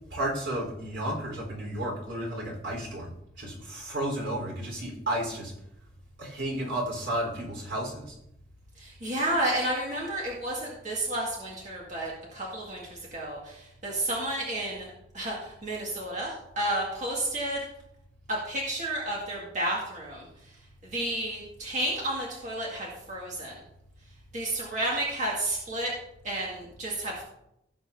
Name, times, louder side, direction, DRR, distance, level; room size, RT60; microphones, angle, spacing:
voice 1, 0.1-3.1 3.4-5.5 6.2-8.0, right 1 dB, 80° right, -2 dB, 4.2 m, -32 dB
voice 2, 8.8-12.8 13.1-17.6 18.3-20.3 20.9-23.5 24.3-25.9 26.2-27.2, right 1 dB, 40° right, -4 dB, 2.0 m, -31 dB
16.5 x 7.6 x 2.7 m, 0.80 s
head